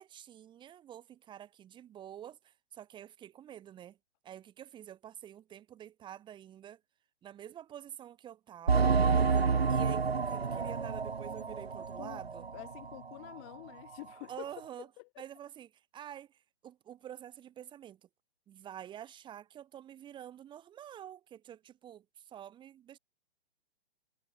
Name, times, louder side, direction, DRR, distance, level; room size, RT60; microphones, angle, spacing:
voice 1, 0.0-4.0 4.2-6.8 7.2-9.0 9.7-12.5 14.3-14.9 15.2-16.3 16.6-18.0 18.5-23.0, right 10 dB, 15° right, 3.9 m, -48 dB
sound 1, 8.7-13.0 13.3-13.4 13.9-14.0, right 5 dB, 80° right, 1.0 m, -29 dB
voice 2, 12.5-14.5 14.8-15.2, left 33 dB, 30° left, 4.7 m, -48 dB
figure-of-eight pair, 125°, 30 cm